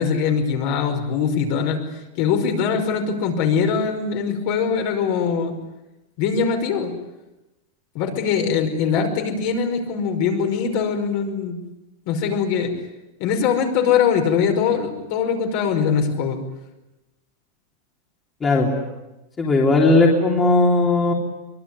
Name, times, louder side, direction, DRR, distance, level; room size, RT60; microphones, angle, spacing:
voice 1, 0.0-1.8 2.2-5.5 6.2-6.9 7.9-11.6 12.1-12.7 13.2-16.4, left 6 dB, 45° left, 4 dB, 5.4 m, -22 dB
voice 2, 19.4-21.1, left 2 dB, 15° left, -2 dB, 3.5 m, -17 dB
24.0 x 23.0 x 9.9 m, 1.0 s
supercardioid pair, 170°, 0 cm